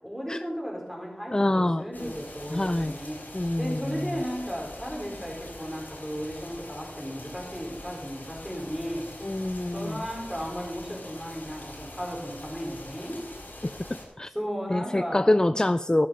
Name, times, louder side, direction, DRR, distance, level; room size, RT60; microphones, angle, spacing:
voice 1, 0.0-3.2 3.5-9.1 9.7-13.2 14.3-15.3, equal, 5° right, -1 dB, 4.5 m, -35 dB
voice 2, 1.3-1.8 2.5-2.9 3.3-4.2 9.2-10.0 13.6-13.7 14.2-14.3 14.7-16.1, left 1 dB, 25° left, 13 dB, 0.3 m, -25 dB
sound 1, 1.9-14.0, left 1 dB, 80° left, 4.5 m, -44 dB
12.5 x 9.1 x 5.3 m, 0.93 s
wide cardioid pair, 45°, 3 cm